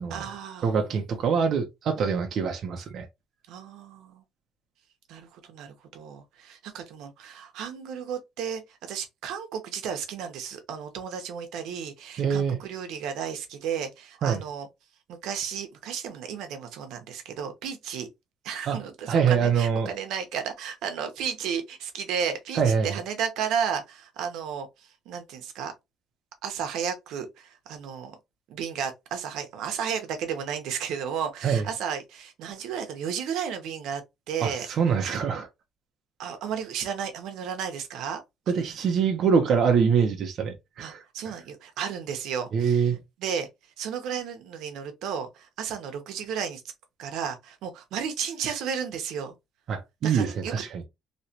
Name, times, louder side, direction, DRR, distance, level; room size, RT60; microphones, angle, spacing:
voice 1, 0.1-0.7 2.0-2.1 3.5-4.2 5.1-14.7 15.1-18.1 18.4-25.7 26.4-28.2 28.5-34.7 36.2-38.2 40.8-42.9 43.2-43.5 43.8-46.6 47.0-49.3 50.0-50.6, right 7 dB, 75° right, 0.9 m, -33 dB
voice 2, 0.6-3.1 12.2-12.6 14.2-14.4 18.7-18.8 19.1-19.9 22.6-22.9 31.4-31.6 34.4-35.5 38.5-41.4 42.5-43.0 49.7-50.8, right 6 dB, 50° right, 0.7 m, -24 dB
3.2 x 2.9 x 2.8 m
cardioid pair, 160°, 0 cm